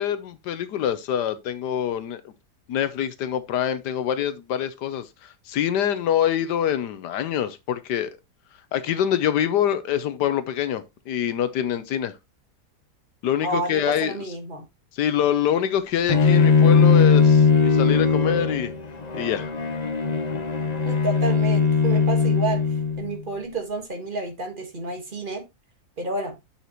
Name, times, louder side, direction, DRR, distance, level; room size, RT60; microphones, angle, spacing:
voice 1, 0.0-2.3 2.7-8.2 8.7-12.1 13.2-14.2 14.9-18.7 19.1-19.5, left 10 dB, 80° left, 1.3 m, -25 dB
voice 2, 13.4-14.6 20.8-22.6 23.0-25.4 26.0-26.3, right 3 dB, 30° right, 1.7 m, -30 dB
Bowed string instrument, 16.1-23.1, left 5 dB, 35° left, 0.7 m, -19 dB
8.3 x 5.9 x 3.0 m
omnidirectional pair, 1.8 m